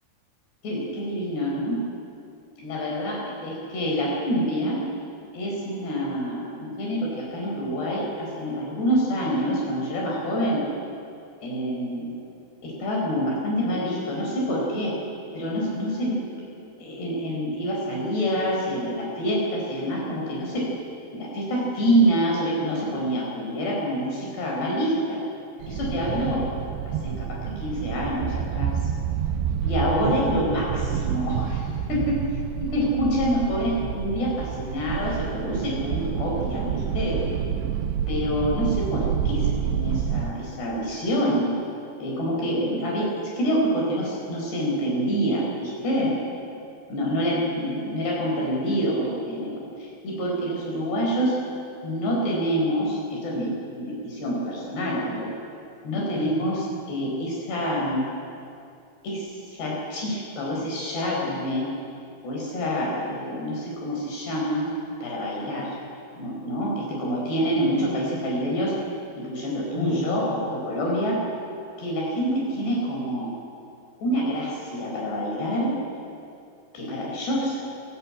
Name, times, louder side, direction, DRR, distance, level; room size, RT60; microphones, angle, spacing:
voice 1, 0.6-1.8 2.6-4.8 5.3-10.6 11.4-12.1 12.6-15.0 15.3-16.2 16.8-20.7 21.1-25.2 25.7-26.4 26.9-28.7 29.6-32.2 32.6-37.4 38.1-41.5 42.0-46.2 46.9-51.4 51.8-53.5 53.8-55.3 55.8-58.0 59.0-59.3 59.6-61.7 62.2-64.7 65.0-65.8 66.1-68.8 69.2-71.2 71.8-73.3 74.0-75.7 76.7-77.6, equal, 65° left, -3 dB, 6.6 m, -26 dB
sound 1, 25.6-40.3, right 8 dB, 75° right, 3.0 m, -28 dB
29.0 x 22.0 x 8.7 m, 2.6 s
omnidirectional pair, 5.3 m